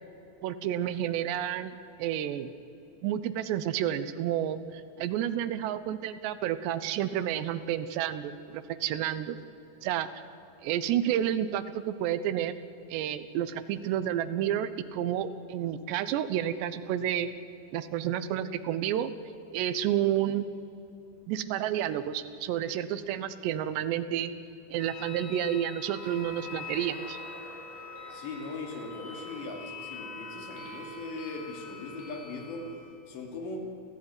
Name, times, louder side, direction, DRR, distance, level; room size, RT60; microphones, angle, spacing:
voice 1, 0.4-2.5 3.0-9.4 9.8-10.1 10.6-12.5 12.9-17.3 17.7-19.1 19.5-20.5 21.3-24.3 24.7-27.2, right 10 dB, 80° right, 13 dB, 3.1 m, -30 dB
sound 1, 24.8-32.7, left 4 dB, 55° left, 7.2 m, -44 dB
Chuckle chortle, 26.1-29.9, left 1 dB, 15° left, 2.6 m, -51 dB
voice 2, 28.1-32.7 33.1-33.6, left 3 dB, 80° left, 3 dB, 5.1 m, -39 dB
29.0 x 15.5 x 9.6 m, 2.8 s
omnidirectional pair, 5.0 m